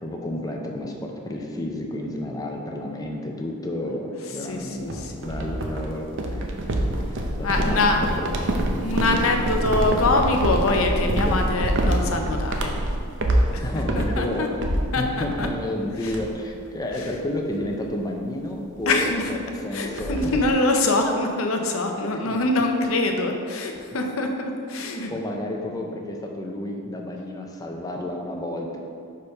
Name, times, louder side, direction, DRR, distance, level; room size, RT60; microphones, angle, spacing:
voice 1, 0.0-6.7 7.1-8.3 8.7-8.8 11.2-11.4 13.6-14.6 15.0-20.4 22.0-22.4 24.7-28.8, left 1 dB, 15° left, 1 dB, 0.6 m, -31 dB
voice 2, 4.5-5.3 7.4-8.0 8.8-12.7 13.5-13.7 14.0-14.5 14.9-15.0 15.4-15.5 18.9-19.2 19.7-25.1, left 2 dB, 70° left, 3 dB, 0.7 m, -24 dB
sound 1, 4.9-15.8 16.1-16.5 16.9-17.1 17.5-17.8 18.8-18.9 19.2-19.3 19.5-20.5, right 1 dB, 55° right, 0.6 m, -26 dB
5.0 x 4.5 x 5.3 m, 2.4 s
head